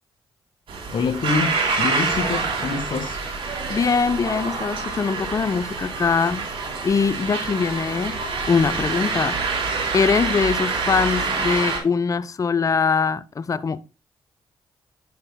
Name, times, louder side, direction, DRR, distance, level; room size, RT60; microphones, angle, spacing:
sound 1, 0.7-11.8, right 4 dB, 65° right, 3.3 m, -26 dB
voice 1, 0.9-3.2, left 5 dB, 55° left, 1.6 m, -26 dB
voice 2, 3.7-6.5 6.8-8.2 8.5-9.4 9.9-13.8, left 5 dB, 35° left, 0.5 m, -22 dB
10.5 x 6.5 x 2.2 m
supercardioid pair, 50°, 10 cm